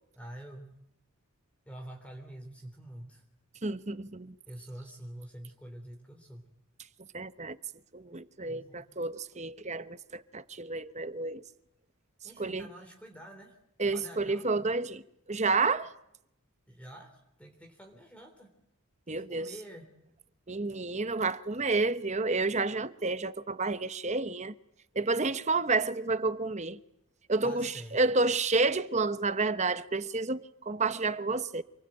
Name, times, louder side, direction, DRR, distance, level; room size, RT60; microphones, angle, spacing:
voice 1, 0.2-0.8 1.6-3.2 4.5-6.5 8.4-8.8 12.2-13.6 13.9-14.6 16.7-18.5 19.1-19.9 27.4-28.0, right 1 dB, 5° left, 3.4 m, -47 dB
voice 2, 3.6-4.3 7.1-7.6 7.9-11.4 12.4-12.6 13.8-15.0 15.3-15.9 19.1-19.5 20.5-24.5 24.9-26.8 27.3-31.6, right 3 dB, 30° right, 1.0 m, -30 dB
28.5 x 21.5 x 9.0 m
head